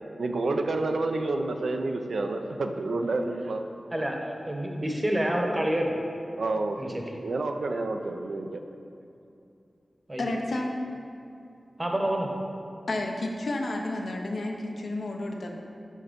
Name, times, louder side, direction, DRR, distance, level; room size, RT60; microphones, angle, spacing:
voice 1, 0.2-3.6 6.4-8.5, right 2 dB, 85° right, 5 dB, 0.4 m, -29 dB
voice 2, 3.9-6.0 6.8-7.0 10.1-10.4 11.8-12.3, right 1 dB, 25° right, 2 dB, 0.9 m, -28 dB
voice 3, 10.2-10.7 12.9-15.5, left 2 dB, 80° left, 1 dB, 0.7 m, -31 dB
6.4 x 4.3 x 5.1 m, 2.6 s
cardioid pair, 55°, 0 cm